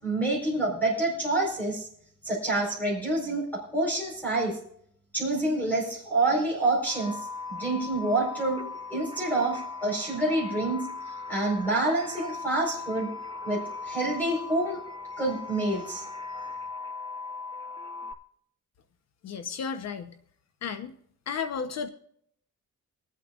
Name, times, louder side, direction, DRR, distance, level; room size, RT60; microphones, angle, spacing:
voice 1, 0.0-1.9 2.2-3.4 3.7-4.6 5.1-7.2 7.5-13.1 13.4-14.8 15.2-16.1, right 2 dB, 5° left, -4 dB, 4.4 m, -27 dB
sound 1, 6.9-18.1, left 4 dB, 15° right, 0.7 m, -38 dB
voice 2, 19.2-20.1 20.6-20.9 21.3-21.9, left 6 dB, 55° left, 9 dB, 0.9 m, -33 dB
25.0 x 8.5 x 2.4 m, 0.67 s
cardioid pair, 140°, 31 cm